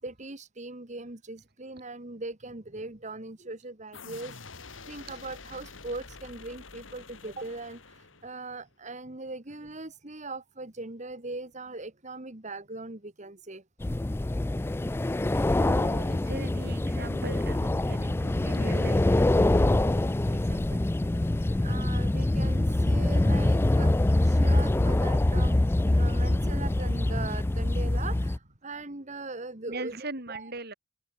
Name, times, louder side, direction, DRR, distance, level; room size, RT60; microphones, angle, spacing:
voice 1, 0.0-13.6 21.6-23.9 24.2-30.5, right 2 dB, 40° right, 2.2 m, -40 dB
sound 1, 3.9-8.6, left 4 dB, 80° left, 2.9 m, -47 dB
sound 2, 13.8-28.4, left 1 dB, 10° left, 0.3 m, -25 dB
voice 2, 15.6-19.3 19.5-20.0 20.3-20.8 29.7-30.7, right 2 dB, 55° right, 7.5 m, -40 dB
head